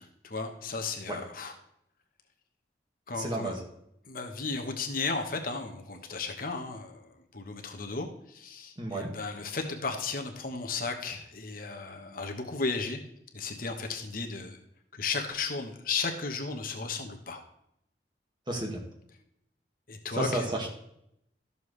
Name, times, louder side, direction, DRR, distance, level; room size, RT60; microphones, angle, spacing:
voice 1, 0.0-1.5 3.1-3.6 4.1-13.0 13.3-14.6 15.0-17.4 19.9-20.5, left 4 dB, 55° left, 4 dB, 1.1 m, -35 dB
voice 2, 3.2-3.6 8.8-9.1 18.5-18.8 20.1-20.7, right 1 dB, 25° right, 0 dB, 1.9 m, -31 dB
13.0 x 6.9 x 3.3 m, 0.76 s
head